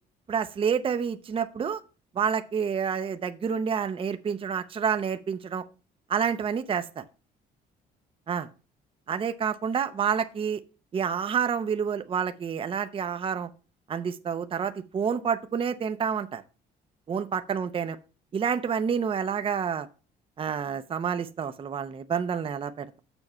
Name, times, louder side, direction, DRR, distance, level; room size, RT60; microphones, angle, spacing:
voice 1, 0.3-1.8 2.1-5.6 6.1-7.0 8.3-8.5 9.1-10.6 10.9-13.5 13.9-16.4 17.1-18.0 18.3-19.9 20.4-23.0, right 7 dB, 30° right, 10 dB, 0.7 m, -28 dB
7.1 x 5.9 x 5.4 m, 0.35 s
cardioid pair, 110°, 17 cm